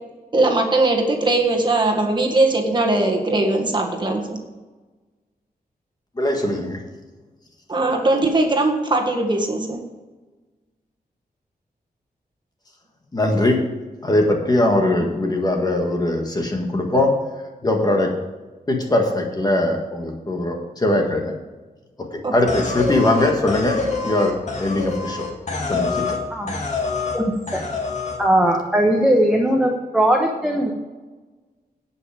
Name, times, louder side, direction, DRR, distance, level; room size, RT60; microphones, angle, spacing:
voice 1, 0.3-4.4 7.7-9.8 15.0-15.1 22.2-22.3, right 2 dB, 30° right, 1 dB, 1.7 m, -20 dB
voice 2, 6.2-6.8 13.1-13.6 14.0-17.1 17.6-18.1 18.7-21.3 22.3-24.3 24.6-25.3 25.7-26.1, left 1 dB, 25° left, 2 dB, 1.7 m, -20 dB
sound 1, 22.5-26.2 26.5-27.2 27.5-28.2, left 4 dB, 45° left, 2.0 m, -26 dB
voice 3, 28.2-30.7, right 1 dB, 5° right, 0 dB, 1.1 m, -19 dB
17.5 x 5.9 x 5.0 m, 1.2 s
wide cardioid pair, 165°, 16 cm